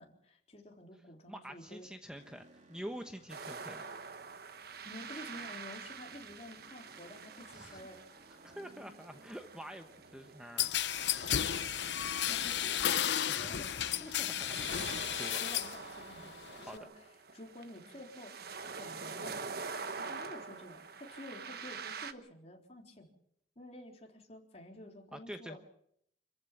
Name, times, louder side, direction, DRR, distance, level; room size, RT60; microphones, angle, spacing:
voice 1, 0.0-1.9 4.9-8.0 12.3-13.0 13.3-14.1 15.4-16.9 17.3-18.4 18.7-19.5 20.0-23.1 23.6-25.6, left 1 dB, 40° left, 1 dB, 3.9 m, -50 dB
voice 2, 1.3-3.9 7.5-7.8 8.4-10.7 11.3-11.4 12.0-12.4 13.3-15.4 16.6-16.8 25.1-25.6, equal, 5° right, 6 dB, 1.0 m, -47 dB
sound 1, 2.1-16.9, right 2 dB, 45° right, 2.7 m, -63 dB
sound 2, 3.3-22.1, right 5 dB, 60° right, 1.3 m, -46 dB
sound 3, 10.6-15.8 16.1-16.8, left 10 dB, 75° left, 0.7 m, -33 dB
27.0 x 15.0 x 7.5 m, 0.72 s
head